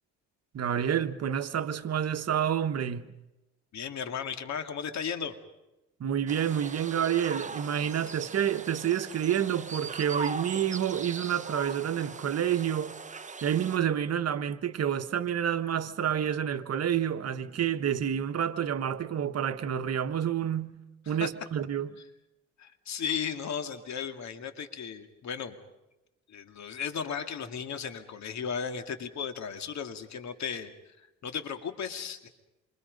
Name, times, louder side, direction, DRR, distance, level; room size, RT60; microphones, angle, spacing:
voice 1, 0.5-3.1 6.0-13.0 13.4-20.8 21.1-21.9, right 9 dB, 55° right, 1.3 m, -29 dB
voice 2, 3.7-5.3 21.1-21.3 22.6-25.6 26.3-32.3, left 7 dB, 65° left, 2.3 m, -35 dB
sound 1, 6.3-13.8, right 4 dB, 25° right, 1.2 m, -40 dB
27.0 x 25.0 x 5.3 m
cardioid pair, 90°, 30 cm